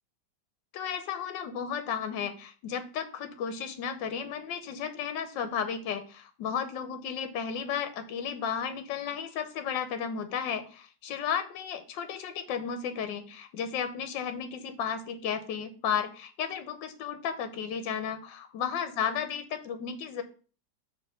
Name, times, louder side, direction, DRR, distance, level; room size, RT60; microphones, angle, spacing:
voice 1, 0.7-20.2, left 7 dB, 75° left, 8 dB, 1.5 m, -33 dB
6.1 x 3.3 x 5.6 m, 0.39 s
omnidirectional pair, 2.0 m